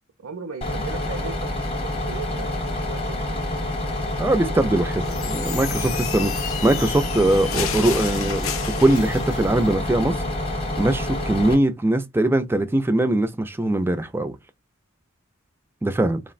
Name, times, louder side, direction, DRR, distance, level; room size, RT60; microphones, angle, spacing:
voice 1, 0.2-1.5 1.8-3.4, right 4 dB, 80° right, 0.5 m, -37 dB
Bus, 0.6-11.5, left 1 dB, 30° left, 0.8 m, -27 dB
voice 2, 4.2-10.2 10.8-14.3 15.8-16.2, right 1 dB, 10° right, 0.3 m, -21 dB
Magical Elf Entrance, 5.0-9.5, left 8 dB, 75° left, 0.5 m, -32 dB
3.3 x 2.1 x 2.3 m
head